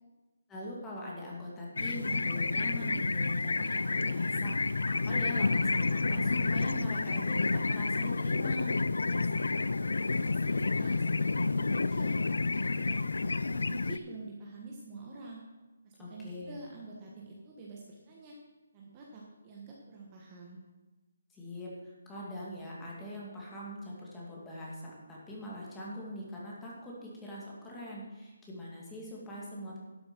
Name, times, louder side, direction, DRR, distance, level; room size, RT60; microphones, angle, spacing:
voice 1, 0.5-8.7 16.0-16.6 21.3-29.8, left 1 dB, 10° left, -5 dB, 2.2 m, -42 dB
sound 1, 1.8-14.0, left 3 dB, 90° left, 0.5 m, -30 dB
voice 2, 9.0-13.0 13.4-15.4 15.8-18.4 18.7-20.6, right 2 dB, 20° right, -3 dB, 1.3 m, -47 dB
12.0 x 7.2 x 6.0 m, 1.2 s
hypercardioid pair, 170°, 0 cm